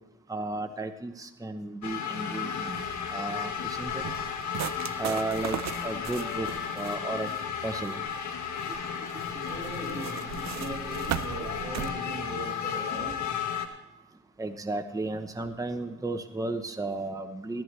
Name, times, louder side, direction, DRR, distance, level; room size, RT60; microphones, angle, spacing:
voice 1, 0.3-2.8 3.1-4.0 5.0-6.5 6.7-7.3 7.6-8.0 14.4-17.6, right 2 dB, 10° right, 6 dB, 0.9 m, -34 dB
sound 1, 1.8-13.7, left 7 dB, 75° left, 1.6 m, -34 dB
sound 2, 2.6-11.9, right 9 dB, 70° right, 0.6 m, -39 dB
voice 2, 9.3-13.2, right 2 dB, 30° right, -7 dB, 4.0 m, -39 dB
14.0 x 13.5 x 3.2 m, 0.99 s
cardioid pair, 115°, 29 cm